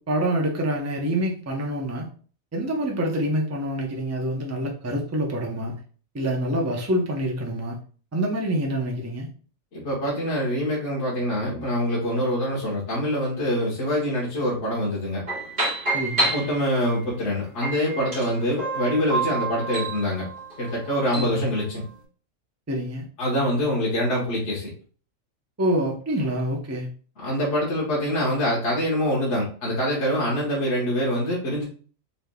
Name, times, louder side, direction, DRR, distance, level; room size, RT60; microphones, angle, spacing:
voice 1, 0.0-2.1 2.5-5.8 6.1-7.8 8.1-9.3 15.9-16.3 21.2-21.4 22.7-23.1 25.6-26.9, right 1 dB, 20° right, 1 dB, 0.4 m, -26 dB
voice 2, 9.7-15.2 16.3-20.3 20.6-21.8 23.2-24.7 27.2-31.6, equal, 60° left, -5 dB, 1.4 m, -25 dB
sound 1, 15.3-17.0 17.6-21.4, right 2 dB, 40° right, 1.9 m, -28 dB
4.0 x 3.3 x 2.2 m, 0.41 s
omnidirectional pair, 1.4 m